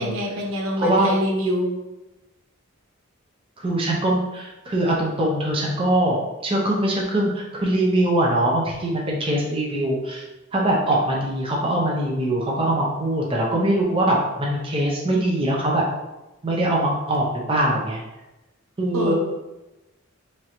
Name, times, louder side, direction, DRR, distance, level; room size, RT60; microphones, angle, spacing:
voice 1, 0.0-1.7 18.9-19.1, equal, 70° right, 0 dB, 0.7 m, -25 dB
voice 2, 0.8-1.1 3.6-10.2 10.5-15.9 16.4-18.0 18.8-19.1, right 1 dB, 25° right, -3 dB, 0.6 m, -22 dB
3.7 x 3.2 x 2.9 m, 1.0 s
head